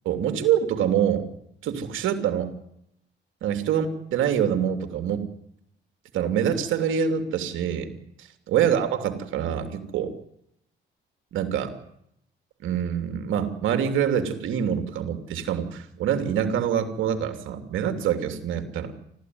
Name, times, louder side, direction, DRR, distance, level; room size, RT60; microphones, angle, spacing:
voice 1, 0.0-1.2 1.6-2.5 3.4-5.2 6.1-7.9 8.5-10.1 11.3-11.7 12.6-18.9, right 8 dB, 85° right, 8 dB, 3.0 m, -25 dB
29.0 x 13.5 x 9.6 m, 0.76 s
cardioid pair, 90°, 20 cm